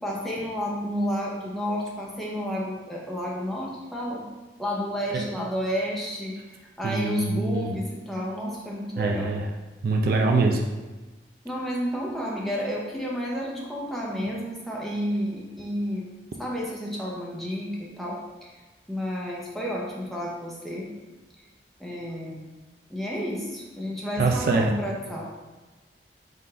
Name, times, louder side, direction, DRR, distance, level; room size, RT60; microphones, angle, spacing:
voice 1, 0.0-4.2 4.6-9.3 11.4-16.1 16.4-18.5 18.9-20.9 21.8-22.4 22.9-25.2, equal, ahead, -4 dB, 0.7 m, -31 dB
voice 2, 6.8-7.7 9.0-9.5 9.8-10.6 24.2-24.7, right 3 dB, 55° right, 2 dB, 0.4 m, -24 dB
3.8 x 2.5 x 4.3 m, 1.2 s
head